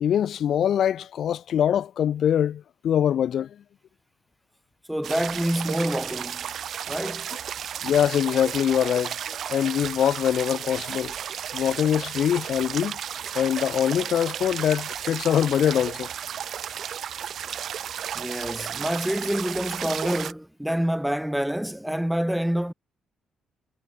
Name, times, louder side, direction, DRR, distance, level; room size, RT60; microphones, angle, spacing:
voice 1, 0.0-3.5 7.8-9.1 9.5-11.1 11.5-13.0 13.4-16.1, left 9 dB, 65° left, 0.3 m, -23 dB
voice 2, 4.9-6.5 6.9-7.3 18.1-22.7, equal, 5° right, 0.5 m, -27 dB
sound 1, 5.0-20.3, right 9 dB, 65° right, 0.9 m, -33 dB
cardioid pair, 90°, 0 cm